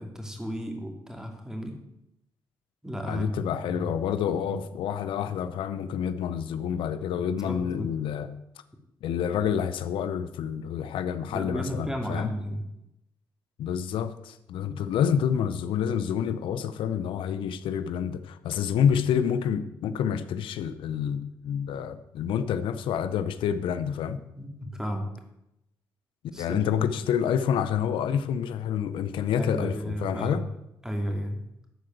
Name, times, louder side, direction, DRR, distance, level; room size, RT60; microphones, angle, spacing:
voice 1, 0.0-1.7 2.8-3.4 3.8-3.9 4.4-4.5 7.2-7.9 11.3-12.6 14.7-14.8 24.4-25.1 26.3-27.1 29.4-30.4 30.8-31.4, equal, 5° right, 3 dB, 2.6 m, -33 dB
voice 2, 3.0-8.3 9.0-12.3 13.6-24.2 26.4-30.4, left 8 dB, 80° left, 12 dB, 0.6 m, -28 dB
12.5 x 4.9 x 7.8 m, 0.85 s
cardioid pair, 75°, 9 cm